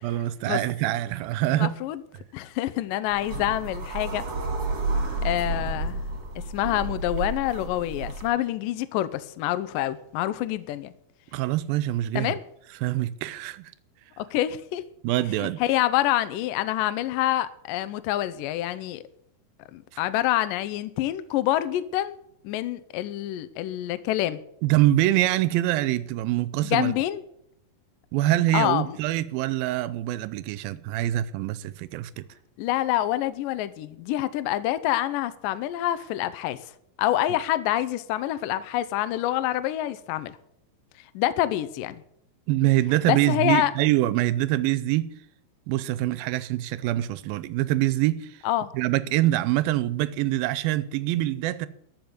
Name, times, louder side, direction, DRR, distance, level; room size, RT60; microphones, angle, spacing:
voice 1, 0.0-1.7 11.3-12.4 12.8-13.7 15.0-15.6 24.6-27.0 28.1-32.2 42.5-45.1 45.7-48.3 48.7-51.7, right 15 dB, 80° right, 2.3 m, -24 dB
voice 2, 1.5-2.0 2.3-4.2 5.2-6.0 6.5-10.9 12.2-12.4 14.2-14.8 15.4-19.0 19.7-22.2 22.4-24.4 26.6-27.2 28.5-29.0 32.6-36.6 37.0-40.4 41.2-42.0 43.0-43.7 48.4-48.7, left 13 dB, 85° left, 2.0 m, -26 dB
sound 1, 3.1-8.3, right 2 dB, 40° right, 1.9 m, -31 dB
14.0 x 5.3 x 9.3 m
omnidirectional pair, 4.5 m